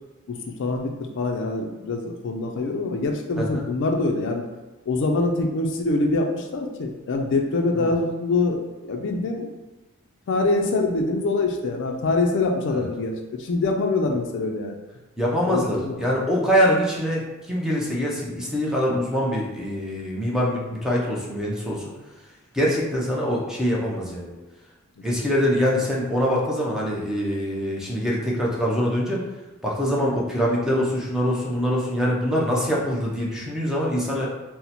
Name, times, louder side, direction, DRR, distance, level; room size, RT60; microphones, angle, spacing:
voice 1, 0.3-4.4 4.9-9.5 10.3-14.7 15.4-16.0, left 3 dB, 55° left, 2 dB, 0.4 m, -24 dB
voice 2, 15.2-21.9 22.5-24.4 25.0-29.2 29.6-34.3, equal, ahead, -4 dB, 0.5 m, -24 dB
2.8 x 2.1 x 3.9 m, 1.1 s
head